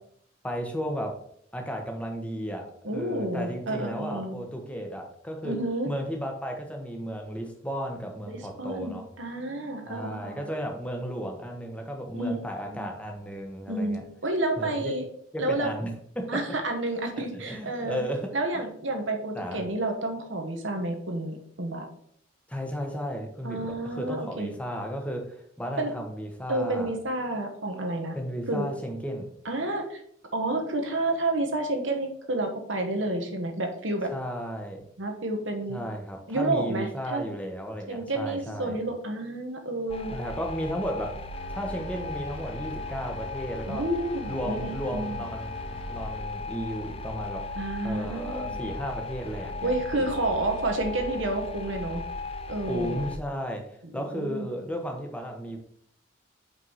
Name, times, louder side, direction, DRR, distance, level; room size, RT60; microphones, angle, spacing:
voice 1, 0.4-1.2 1.5-5.6 5.9-9.1 9.9-14.0 14.6-14.9 15.3-16.4 17.2-18.3 19.3-19.6 22.5-26.9 28.1-29.3 34.1-34.8 35.7-38.8 40.1-41.2 41.5-43.9 44.3-47.5 47.8-50.1 52.7-55.6, equal, 5° left, 2 dB, 1.1 m, -34 dB
voice 2, 2.8-4.3 5.4-5.9 8.3-10.5 12.1-12.9 13.7-15.0 15.4-15.7 16.3-18.0 18.3-21.9 23.4-24.5 25.8-25.9 26.5-28.1 28.5-28.7 29.4-30.0 30.3-34.1 35.0-35.8 36.3-37.2 37.9-40.1 43.7-45.3 47.5-48.6 49.6-52.0 52.5-53.1 53.8-54.5, right 2 dB, 70° right, 4 dB, 1.3 m, -30 dB
sound 1, 39.9-53.2, left 3 dB, 30° left, 0.5 m, -37 dB
sound 2, 41.3-47.8, equal, 70° left, 1.6 m, -46 dB
5.3 x 4.7 x 5.6 m, 0.67 s
head